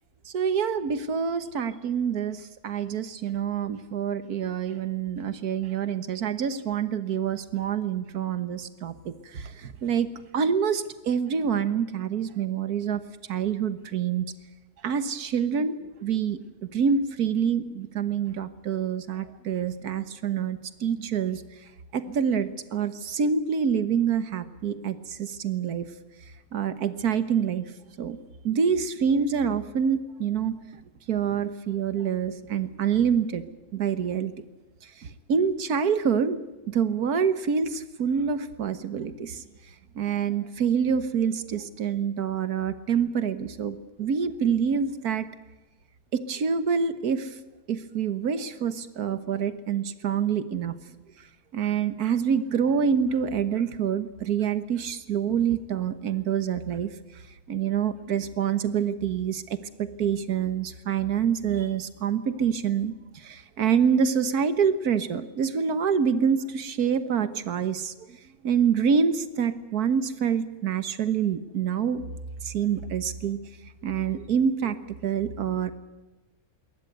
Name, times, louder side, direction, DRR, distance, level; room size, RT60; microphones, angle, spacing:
voice 1, 0.3-10.1 10.3-13.0 13.3-14.3 14.8-21.4 21.9-25.9 26.5-27.6 28.0-28.2 28.4-30.6 31.1-33.4 33.7-34.3 35.0-36.4 36.7-39.4 40.0-45.3 46.1-47.3 47.7-50.8 51.5-56.9 57.5-68.2 68.4-72.0 72.4-73.4 73.8-75.7, right 7 dB, 80° right, 12 dB, 1.7 m, -26 dB
22.0 x 18.5 x 8.1 m, 1.1 s
omnidirectional pair, 1.6 m